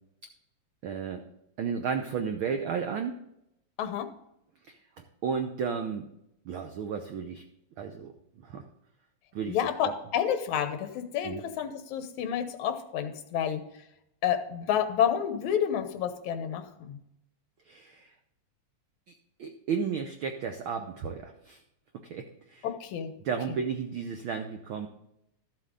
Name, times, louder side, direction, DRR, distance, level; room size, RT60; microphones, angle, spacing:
voice 1, 0.8-1.2 1.6-3.2 4.7-6.1 6.4-7.4 7.8-8.1 8.4-8.6 9.3-9.6 9.8-9.9 11.2-11.4 17.7-18.1 19.1-21.6 22.1-22.7 23.2-24.9, right 6 dB, 90° right, 6 dB, 1.1 m, -33 dB
voice 2, 3.8-4.1 9.5-13.6 14.2-17.0 22.6-23.1, left 9 dB, 80° left, 9 dB, 2.3 m, -29 dB
13.5 x 7.6 x 3.7 m, 0.81 s
omnidirectional pair, 3.3 m